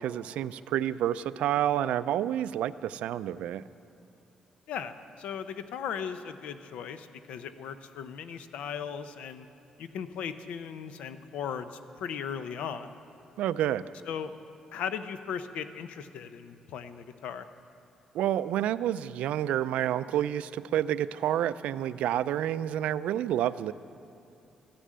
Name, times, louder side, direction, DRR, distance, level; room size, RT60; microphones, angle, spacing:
voice 1, 0.0-3.6 13.4-13.8 18.1-23.7, right 11 dB, 90° right, 15 dB, 0.4 m, -29 dB
voice 2, 4.7-9.4 9.8-12.9 14.1-14.3 14.7-17.5, left 7 dB, 85° left, 11 dB, 0.7 m, -37 dB
14.0 x 10.0 x 7.5 m, 2.6 s
cardioid pair, 150°, 2 cm